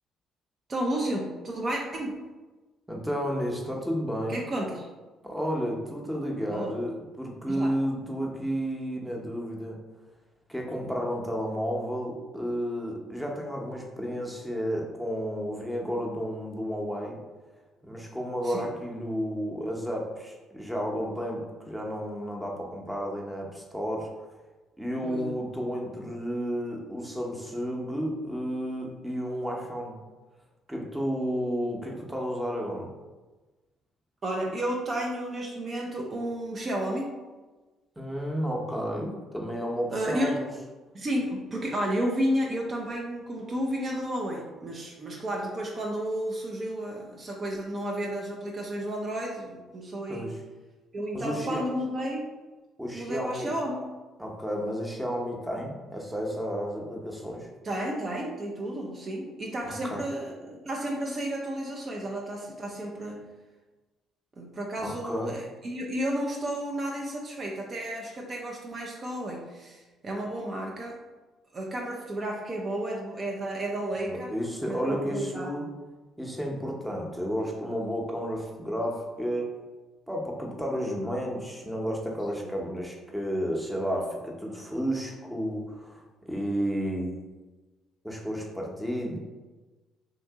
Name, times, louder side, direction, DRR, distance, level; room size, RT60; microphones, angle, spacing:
voice 1, 0.7-2.1 4.3-4.9 6.5-6.8 7.5-7.7 18.4-18.7 25.0-25.4 34.2-37.1 39.9-40.4 40.9-50.2 50.9-52.2 52.9-53.8 57.6-63.2 64.4-71.0 71.5-74.3 74.7-75.5 82.3-82.5, right 1 dB, 40° right, -1 dB, 0.5 m, -32 dB
voice 2, 2.9-4.4 5.2-9.8 10.5-17.2 17.8-24.1 24.8-30.0 30.7-32.9 38.0-40.5 50.1-50.3 51.1-51.6 52.8-53.5 54.2-57.5 59.6-60.0 64.8-65.3 74.1-75.6 76.2-79.5 80.1-86.0 86.3-87.2 88.0-89.2, equal, 5° right, -1 dB, 0.8 m, -32 dB
2.8 x 2.6 x 3.5 m, 1.2 s
hypercardioid pair, 55°, 0 cm